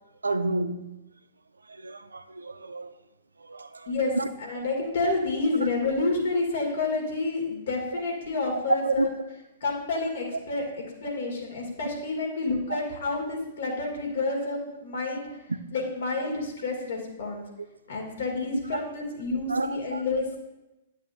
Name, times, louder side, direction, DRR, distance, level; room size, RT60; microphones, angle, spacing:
voice 1, 0.2-1.0 1.7-2.9 3.4-4.3 8.8-9.1 12.7-12.8 15.7-15.8 18.7-18.8 19.5-20.0, right 2 dB, 90° right, 0.4 m, -31 dB
voice 2, 4.4-9.1 9.6-10.7 11.0-17.4 17.9-20.4, left 3 dB, 70° left, 2.4 m, -29 dB
11.0 x 7.4 x 2.7 m
hypercardioid pair, 115°, 0 cm